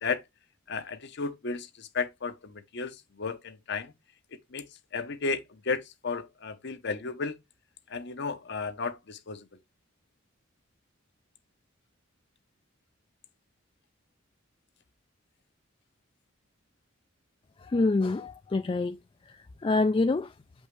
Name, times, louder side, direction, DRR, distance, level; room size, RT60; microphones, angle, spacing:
voice 1, 0.7-3.9 4.5-4.7 4.9-7.4 7.9-9.4, left 4 dB, 60° left, 0.8 m, -33 dB
voice 2, 17.6-19.0 19.6-20.3, left 3 dB, 25° left, 0.3 m, -26 dB
7.8 x 5.4 x 3.1 m
head